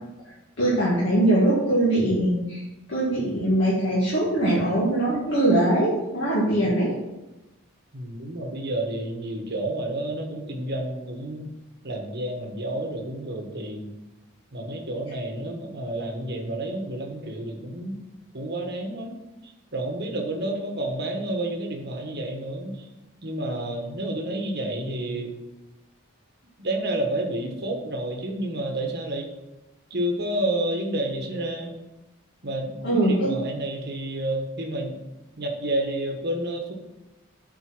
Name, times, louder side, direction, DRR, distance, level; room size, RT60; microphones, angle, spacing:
voice 1, 0.2-2.6 2.9-6.9 32.8-33.3, right 1 dB, 55° left, -8 dB, 2.2 m, -22 dB
voice 2, 7.9-11.5 11.8-13.9 14.5-18.0 18.3-19.1 19.7-22.8 23.2-25.3 26.6-29.3 29.9-31.7 32.4-35.0 35.4-36.7, right 1 dB, 50° right, 2 dB, 1.3 m, -30 dB
7.8 x 4.6 x 6.0 m, 0.99 s
head